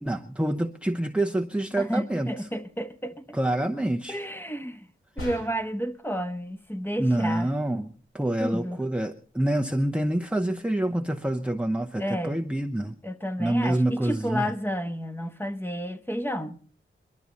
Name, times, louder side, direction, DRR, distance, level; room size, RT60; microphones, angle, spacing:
voice 1, 0.0-2.3 3.3-4.2 7.0-13.0 13.4-14.5, right 1 dB, 5° right, 0.8 m, -27 dB
voice 2, 1.8-3.2 4.1-4.9 5.2-7.5 8.4-8.8 12.0-12.4 13.0-16.6, equal, 10° left, 1.2 m, -31 dB
sound 1, 5.2-5.9, left 2 dB, 85° left, 5.5 m, -39 dB
22.0 x 12.5 x 4.1 m
cardioid pair, 65°, 21 cm